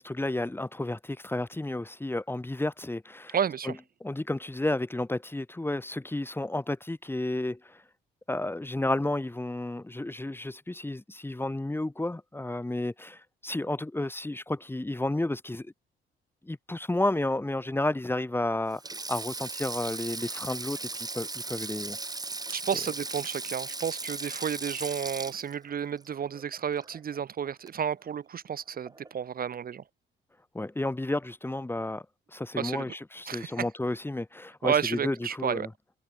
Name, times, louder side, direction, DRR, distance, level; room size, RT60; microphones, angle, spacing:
voice 1, 0.0-3.3 3.7-3.8 4.0-7.8 8.3-15.7 16.4-18.8 19.1-22.0 30.5-32.0 32.3-35.7, left 2 dB, 10° left, 1.7 m, -32 dB
voice 2, 3.3-3.8 22.5-29.8 32.6-32.9 33.3-33.7 34.6-35.7, right 8 dB, 45° right, 1.1 m, -31 dB
Sink (filling or washing), 18.7-27.2 27.4-27.7 28.9-29.1, right 3 dB, 20° right, 3.5 m, -37 dB
cardioid pair, 90°, 20 cm